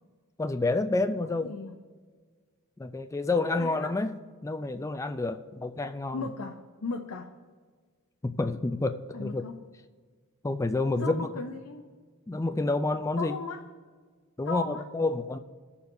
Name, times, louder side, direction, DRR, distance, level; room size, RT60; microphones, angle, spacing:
voice 1, 0.4-1.5 2.8-4.2 4.4-6.3 8.2-9.5 10.4-11.4 12.3-13.4 14.4-15.4, left 2 dB, 15° left, 8 dB, 0.3 m, -29 dB
voice 2, 1.4-1.7 3.5-4.0 6.1-7.3 9.1-9.5 11.0-11.9 13.2-13.6 14.4-14.8, left 3 dB, 80° left, 4 dB, 0.6 m, -36 dB
19.0 x 7.0 x 2.7 m, 1.5 s
head